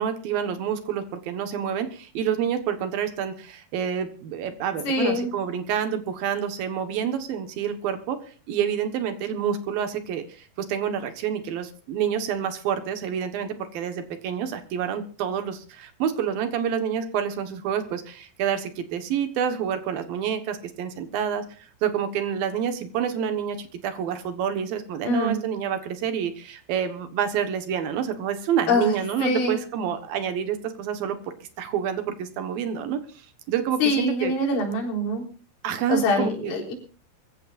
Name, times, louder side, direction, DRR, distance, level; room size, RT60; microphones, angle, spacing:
voice 1, 0.0-8.2 8.5-31.2 31.6-34.3 35.6-36.6, right 8 dB, 65° right, 8 dB, 2.4 m, -28 dB
voice 2, 4.8-5.3 25.0-25.4 28.7-28.9 29.2-29.6 33.8-35.2 35.9-36.7, left 2 dB, 70° left, 1 dB, 6.2 m, -24 dB
24.5 x 15.5 x 2.5 m, 0.39 s
omnidirectional pair, 5.8 m